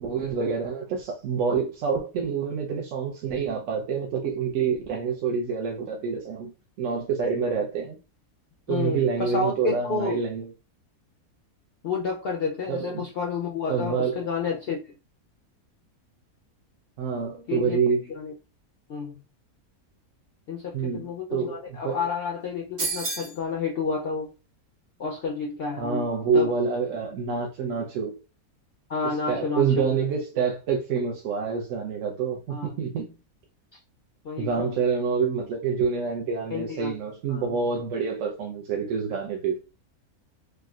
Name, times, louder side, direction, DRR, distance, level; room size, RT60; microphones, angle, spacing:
voice 1, 0.0-6.5 6.8-8.0 8.7-10.5 12.7-13.0 13.7-14.3 17.0-18.0 20.7-22.0 25.8-28.2 29.3-33.1 34.4-39.6, right 5 dB, 70° right, 0.9 m, -27 dB
voice 2, 8.7-10.2 11.8-14.9 17.5-17.8 18.1-18.3 18.9-19.2 20.5-24.3 25.0-26.5 28.9-30.0 32.5-32.8 33.7-33.8 34.2-34.7 36.5-36.9 37.3-37.5, left 4 dB, 80° left, 0.5 m, -30 dB
sound 1, 22.8-23.4, right 4 dB, 50° right, 1.3 m, -29 dB
3.5 x 2.0 x 2.3 m
omnidirectional pair, 1.6 m